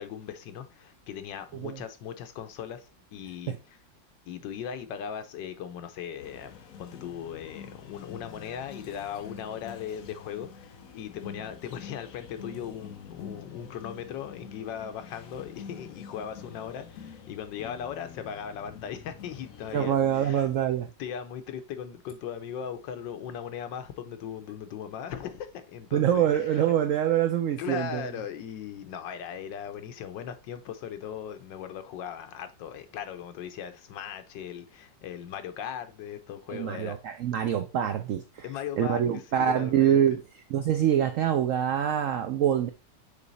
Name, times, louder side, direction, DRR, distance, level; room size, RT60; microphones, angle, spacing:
voice 1, 0.0-3.8 4.3-20.5 21.0-26.7 27.6-37.0 38.4-40.0, left 8 dB, 85° left, 1.5 m, -38 dB
sound 1, 6.2-20.9, left 7 dB, 60° left, 1.0 m, -46 dB
voice 2, 19.7-20.9 25.9-28.0 36.5-38.5 38.8-40.2 40.5-42.7, right 10 dB, 80° right, 0.7 m, -25 dB
7.2 x 3.4 x 3.9 m
omnidirectional pair, 2.0 m